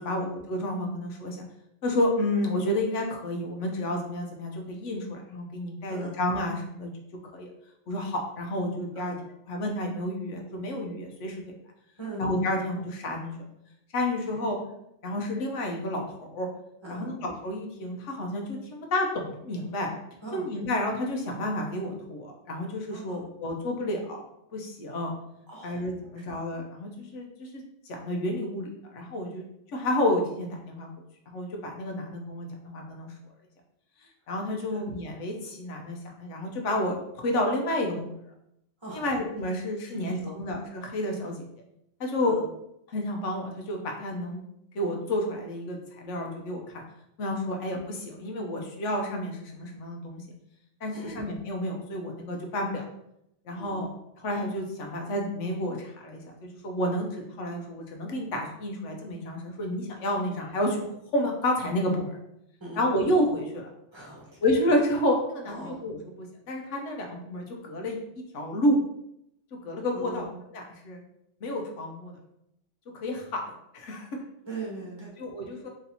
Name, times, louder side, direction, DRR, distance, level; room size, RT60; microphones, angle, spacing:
voice 1, 0.0-1.5 1.8-6.9 7.3-7.5 7.9-9.2 9.5-11.4 12.2-13.3 13.9-14.6 15.0-16.5 16.9-19.9 20.3-24.2 24.5-25.1 25.6-30.9 31.3-33.1 34.3-38.1 38.9-41.4 42.0-42.4 42.9-44.4 44.7-46.6 47.2-50.2 50.8-52.8 53.5-53.9 54.2-60.9 61.1-62.2 62.8-63.7 64.4-68.0 68.3-68.8 69.6-70.3 70.5-71.0 71.4-72.2 72.9-73.4 73.7-74.1 75.2-75.7, left 1 dB, 85° left, 2 dB, 1.1 m, -30 dB
voice 2, 22.9-23.2 25.5-25.8 26.1-26.4 34.7-34.8 38.8-39.0 39.9-40.4 42.2-42.4 50.9-51.2 53.6-53.9 62.6-62.8 63.9-64.4 65.4-65.8 69.9-70.3 74.4-75.1, right 2 dB, 25° right, -5 dB, 1.2 m, -40 dB
3.1 x 2.8 x 3.9 m, 0.79 s
omnidirectional pair, 1.2 m